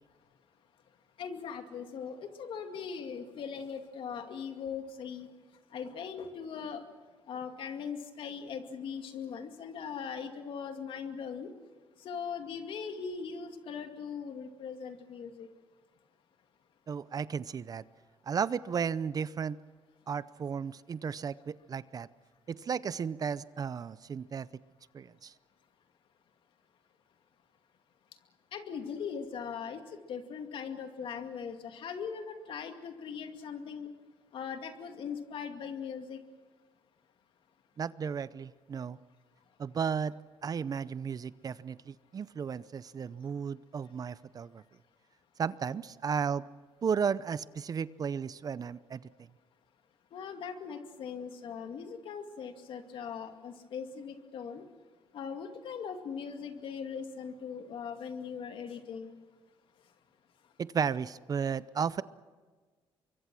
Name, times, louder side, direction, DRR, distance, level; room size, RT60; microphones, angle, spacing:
voice 1, 1.2-5.3 5.7-6.8 7.3-11.5 12.0-15.5 28.5-33.9 34.3-36.2 50.1-54.6 55.1-59.2, left 6 dB, 65° left, 6 dB, 2.3 m, -40 dB
voice 2, 16.9-17.8 18.3-19.6 20.1-22.1 22.5-24.5 24.9-25.3 37.8-39.0 39.6-40.1 40.4-44.6 45.4-46.4 46.8-49.0 60.6-62.0, right 6 dB, 40° right, 17 dB, 0.6 m, -34 dB
25.0 x 23.0 x 6.2 m, 1.4 s
cardioid pair, 90°, 9 cm